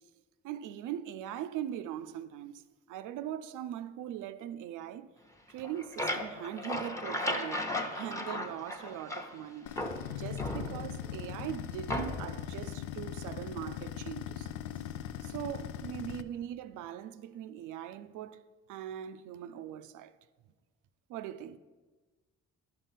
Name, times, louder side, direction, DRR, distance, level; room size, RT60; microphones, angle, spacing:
voice 1, 0.4-2.6 2.9-5.1 5.5-9.7 10.1-14.5 15.2-20.1 21.1-21.6, right 11 dB, 90° right, 0.5 m, -41 dB
sound 1, 5.5-9.4 9.8-11.1 11.9-12.4, left 1 dB, 10° left, 0.9 m, -36 dB
sound 2, 9.7-16.2, left 10 dB, 80° left, 0.5 m, -40 dB
11.0 x 5.5 x 5.7 m
cardioid pair, 90°, 30 cm